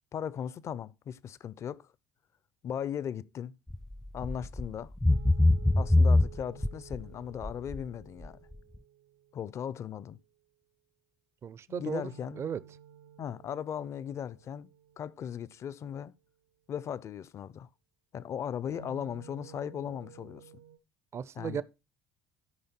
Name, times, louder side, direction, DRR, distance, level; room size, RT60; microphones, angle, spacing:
voice 1, 0.1-1.9 2.6-3.6 4.1-4.9 5.8-8.4 9.3-10.2 11.7-12.4 13.2-16.1 16.7-17.7 18.1-20.5 21.3-21.6, left 8 dB, 50° left, 0.6 m, -38 dB
sound 1, 3.7-3.9 4.2-4.7 5.0-7.0 7.4-7.8 8.3-8.4, left 2 dB, 5° left, 0.4 m, -23 dB
sound 2, 5.1-9.2 11.9-16.1 18.7-20.8, right 8 dB, 85° right, 0.8 m, -52 dB
voice 2, 11.4-12.0 12.4-12.6 21.1-21.6, right 7 dB, 45° right, 0.6 m, -35 dB
12.5 x 5.2 x 4.4 m
supercardioid pair, 70°, 6 cm